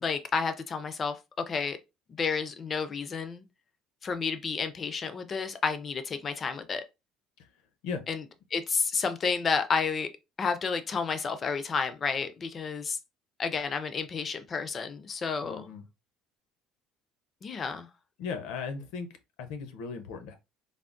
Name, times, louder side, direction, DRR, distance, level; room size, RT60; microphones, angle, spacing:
voice 1, 0.0-1.8 2.1-3.4 4.0-6.8 8.1-8.2 8.5-10.1 10.4-13.0 13.4-15.7 17.4-17.9, left 5 dB, 25° left, 0.3 m, -31 dB
voice 2, 15.4-15.8 18.2-19.1 19.4-20.4, left 5 dB, 80° left, 0.6 m, -37 dB
3.4 x 2.0 x 2.5 m
cardioid pair, 160°, 0 cm